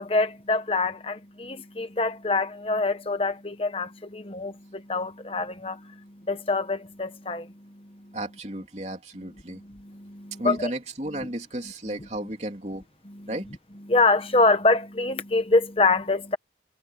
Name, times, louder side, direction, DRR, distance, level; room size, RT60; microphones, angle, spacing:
voice 1, 0.0-8.2 9.5-10.7 13.2-13.3 13.9-16.4, left 3 dB, 30° left, 1.1 m, -25 dB
voice 2, 8.1-9.6 10.4-12.8 13.3-13.5, right 1 dB, 40° right, 3.3 m, -33 dB
head